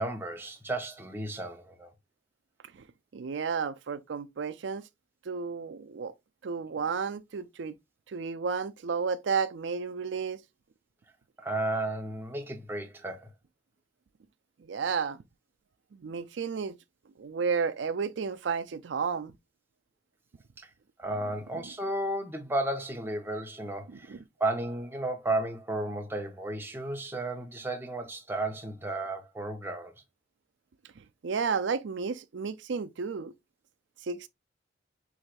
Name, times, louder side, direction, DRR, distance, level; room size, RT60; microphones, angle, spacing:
voice 1, 0.0-1.9 11.4-13.3 20.6-20.7 21.0-29.9, right 2 dB, 10° right, 0.8 m, -33 dB
voice 2, 3.1-4.9 5.2-6.1 6.4-7.8 8.1-10.4 14.6-15.2 15.9-16.8 17.2-19.4 21.6-21.7 23.9-24.2 31.0-33.3 34.0-34.3, right 5 dB, 75° right, 0.5 m, -32 dB
6.2 x 3.2 x 2.5 m
head